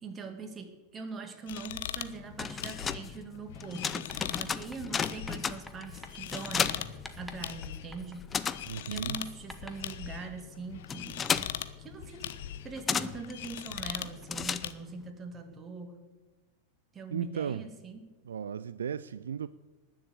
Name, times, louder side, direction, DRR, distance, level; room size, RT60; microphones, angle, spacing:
voice 1, 0.0-6.9 7.1-8.6 8.9-11.3 11.8-12.3 12.6-16.0 16.9-18.1, right 4 dB, 20° right, 2.2 m, -42 dB
sound 1, 1.5-14.7, left 11 dB, 55° left, 0.9 m, -41 dB
sound 2, 2.1-7.7 8.0-15.1, left 6 dB, 20° left, 0.6 m, -35 dB
Writing, 4.1-10.0, left 1 dB, 5° left, 1.4 m, -51 dB
voice 2, 8.7-9.2 17.1-17.7 18.2-19.5, right 8 dB, 65° right, 0.4 m, -35 dB
19.5 x 7.2 x 8.5 m
figure-of-eight pair, 90°, 0 cm